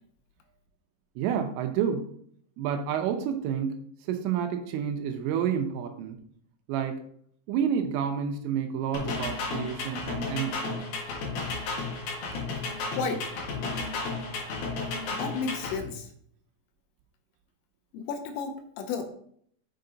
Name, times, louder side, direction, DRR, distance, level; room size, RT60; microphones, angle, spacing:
voice 1, 1.2-2.1 2.6-6.2 6.7-7.0 7.5-10.8, right 8 dB, 80° right, 6 dB, 3.2 m, -29 dB
Islamle - muslmstreet, 8.9-15.8, left 3 dB, 60° left, 2.8 m, -33 dB
voice 2, 15.1-16.1 17.9-19.1, left 5 dB, 80° left, 6 dB, 3.4 m, -32 dB
6.8 x 6.7 x 3.9 m, 0.64 s
omnidirectional pair, 6.0 m